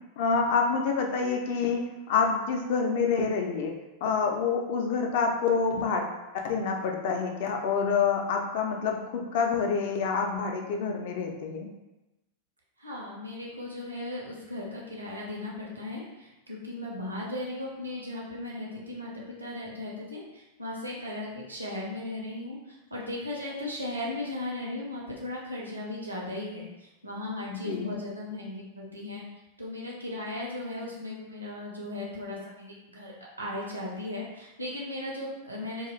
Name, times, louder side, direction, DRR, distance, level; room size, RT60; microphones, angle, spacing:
voice 1, 0.2-3.7 4.0-6.1 6.4-11.7 27.5-28.0, left 5 dB, 50° left, 2 dB, 0.4 m, -27 dB
voice 2, 12.8-29.2 29.6-33.1 33.4-35.9, left 1 dB, 80° right, -3 dB, 0.7 m, -37 dB
2.3 x 2.3 x 3.0 m, 0.99 s
figure-of-eight pair, 90°, 0 cm